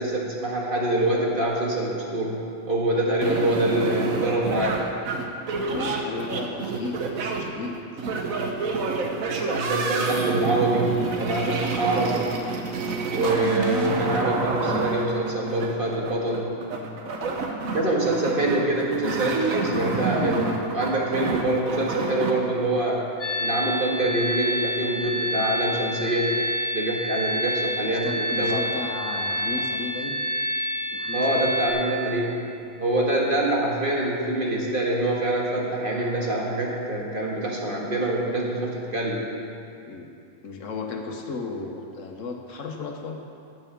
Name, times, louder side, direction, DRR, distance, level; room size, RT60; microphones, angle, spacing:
voice 1, 0.0-2.4 2.7-4.9 9.5-12.3 13.1-16.6 17.7-23.1 23.4-26.3 26.7-28.6 31.1-32.3 32.8-39.3, right 1 dB, 40° right, -3 dB, 1.7 m, -25 dB
sound 1, 3.2-22.3, right 4 dB, 80° right, 1.4 m, -28 dB
voice 2, 5.6-7.8 11.8-11.9 17.6-17.9 27.8-30.2 30.9-31.5 39.8-40.1 40.4-43.2, left 3 dB, 70° left, 3 dB, 1.3 m, -34 dB
Bowed string instrument, 14.7-17.9, left 3 dB, 10° right, 1.0 m, -40 dB
sound 2, 23.2-31.7, equal, 85° left, 1.8 m, -28 dB
9.5 x 7.9 x 7.2 m, 2.5 s
omnidirectional pair, 1.4 m